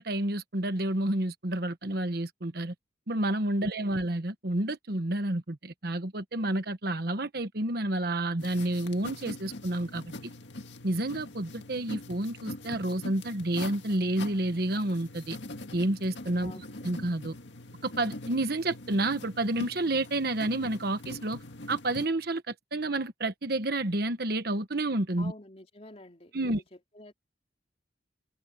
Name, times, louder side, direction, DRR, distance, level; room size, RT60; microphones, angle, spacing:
voice 1, 0.0-2.7 3.1-10.3 10.8-15.4 15.7-16.5 16.8-17.3 17.8-21.4 21.7-25.3 26.3-26.6, right 1 dB, 55° right, 1.3 m, -30 dB
sound 1, 8.4-22.1, left 2 dB, 80° left, 2.0 m, -43 dB
voice 2, 25.2-27.1, left 2 dB, 35° left, 3.3 m, -48 dB
head